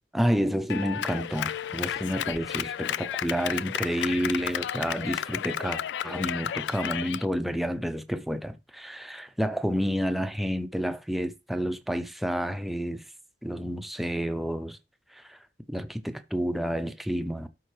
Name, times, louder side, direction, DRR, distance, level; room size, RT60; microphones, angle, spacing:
voice 1, 0.1-13.0 13.4-14.8 15.2-15.4 15.7-17.5, equal, ahead, 0.5 m, -29 dB
Clapping, 0.7-7.3, left 10 dB, 80° left, 0.3 m, -32 dB
12.5 x 4.4 x 3.2 m
head